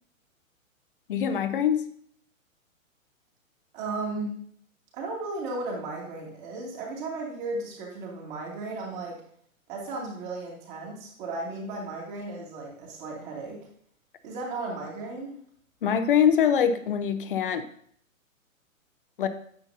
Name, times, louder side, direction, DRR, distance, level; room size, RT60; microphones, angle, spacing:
voice 1, 1.1-1.8 15.8-17.7 19.2-19.3, left 8 dB, 40° left, 11 dB, 0.6 m, -23 dB
voice 2, 3.7-4.4 4.9-9.2 9.7-13.6 14.2-15.4, right 2 dB, 35° right, -2 dB, 2.5 m, -35 dB
9.3 x 7.0 x 2.7 m, 0.62 s
figure-of-eight pair, 120°, 41 cm